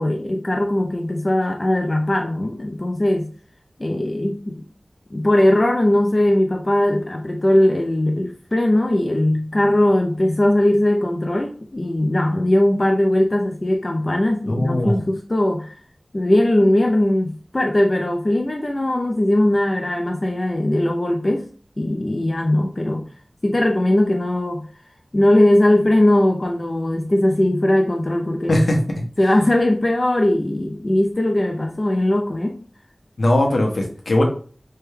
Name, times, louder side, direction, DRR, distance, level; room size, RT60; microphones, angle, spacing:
voice 1, 0.0-3.3 3.8-4.6 5.1-15.7 16.1-21.5 21.8-23.0 23.4-24.6 25.1-28.6 29.2-32.6, left 1 dB, 40° left, 2 dB, 0.4 m, -19 dB
voice 2, 14.5-14.9 28.5-28.8 33.2-34.2, left 1 dB, 75° left, 1 dB, 0.8 m, -19 dB
3.3 x 2.2 x 3.2 m, 0.43 s
wide cardioid pair, 50°, 0 cm